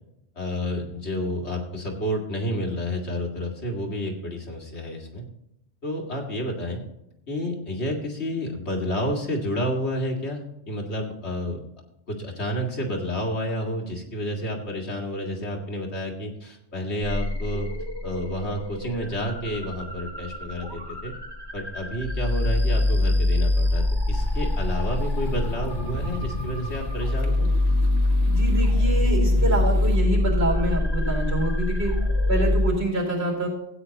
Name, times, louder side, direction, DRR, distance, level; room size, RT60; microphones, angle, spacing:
voice 1, 0.4-5.2 5.8-6.8 7.3-11.6 12.1-17.7 18.0-21.1 21.5-27.5, equal, 80° left, 0 dB, 2.3 m, -30 dB
sound 1, 17.0-32.7, left 2 dB, 20° left, 2.1 m, -24 dB
sound 2, 24.1-30.0, left 1 dB, 35° left, 1.5 m, -35 dB
voice 2, 28.3-31.9 32.3-33.5, right 2 dB, 70° right, -2 dB, 4.2 m, -26 dB
15.5 x 8.9 x 2.9 m, 0.83 s
omnidirectional pair, 1.1 m